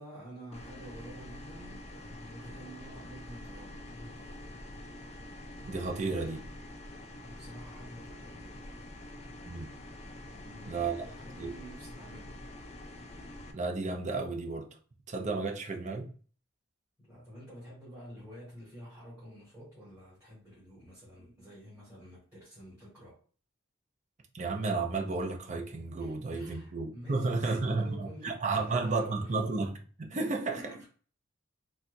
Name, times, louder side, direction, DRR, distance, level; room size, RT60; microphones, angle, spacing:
voice 1, 0.0-4.5 7.2-8.9 10.3-12.4 17.1-23.2 26.0-29.3 30.5-30.9, equal, 10° right, 1.7 m, -49 dB
sound 1, 0.5-13.5, left 1 dB, 35° left, 0.4 m, -46 dB
voice 2, 5.6-6.4 9.4-9.7 10.7-11.0 11.4-11.5 13.5-14.7 15.1-16.1 24.3-30.6, right 3 dB, 40° right, 0.5 m, -32 dB
4.2 x 2.3 x 2.5 m
head